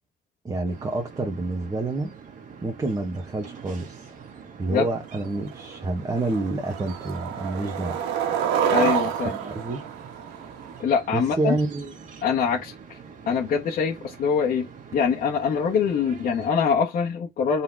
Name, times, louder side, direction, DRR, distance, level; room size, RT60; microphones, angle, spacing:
voice 1, 0.4-2.1 2.6-4.1 4.6-8.0 9.2-9.8 11.1-11.9, right 2 dB, 20° right, 1.5 m, -28 dB
sound 1, 0.6-16.5, right 6 dB, 50° right, 2.1 m, -45 dB
Skateboard, 5.0-5.1 5.5-5.8 6.2-10.8, right 8 dB, 90° right, 1.6 m, -28 dB
voice 2, 8.7-9.3 10.8-11.6 12.2-13.0 13.3-17.6, left 6 dB, 55° left, 1.6 m, -24 dB
5.4 x 4.3 x 4.8 m
cardioid pair, 110°, 17 cm